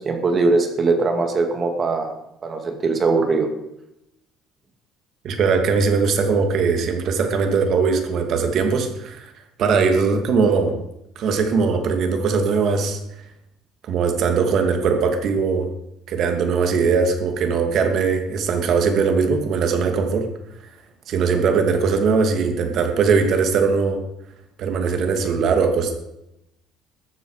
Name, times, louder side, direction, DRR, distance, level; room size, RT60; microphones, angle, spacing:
voice 1, 0.0-2.1 2.4-3.5, right 3 dB, 30° right, 5 dB, 2.3 m, -20 dB
voice 2, 5.2-9.3 9.6-10.7 11.2-13.0 13.8-15.7 16.1-20.3 21.1-24.0 24.6-25.9, right 5 dB, 55° right, 5 dB, 2.5 m, -20 dB
14.0 x 12.5 x 5.0 m, 0.85 s
cardioid pair, 135°, 0 cm